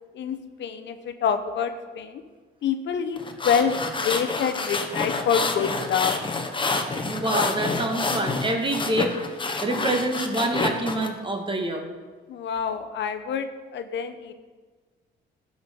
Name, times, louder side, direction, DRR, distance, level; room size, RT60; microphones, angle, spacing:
voice 1, 0.1-2.2 2.6-3.2 3.4-6.2 12.3-14.3, left 7 dB, 65° left, 8 dB, 0.8 m, -27 dB
sound 1, 3.2-11.1, left 3 dB, 25° left, 1.0 m, -28 dB
voice 2, 7.0-9.1 9.6-11.9, right 1 dB, 25° right, 4 dB, 1.5 m, -26 dB
12.0 x 5.4 x 5.2 m, 1.4 s
cardioid pair, 90°, 20 cm